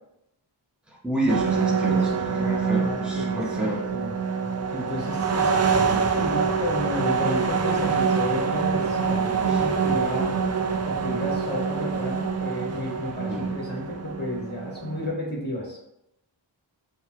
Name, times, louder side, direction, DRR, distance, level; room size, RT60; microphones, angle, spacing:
voice 1, 1.0-3.8 9.5-9.6 13.3-13.5, right 1 dB, ahead, -3 dB, 0.9 m, -29 dB
sound 1, 1.3-15.1, right 5 dB, 35° right, 0.4 m, -25 dB
voice 2, 1.9-4.1 4.7-10.3 10.8-15.8, left 1 dB, 20° left, -3 dB, 1.5 m, -32 dB
6.2 x 2.1 x 2.9 m, 0.82 s
wide cardioid pair, 45°, 48 cm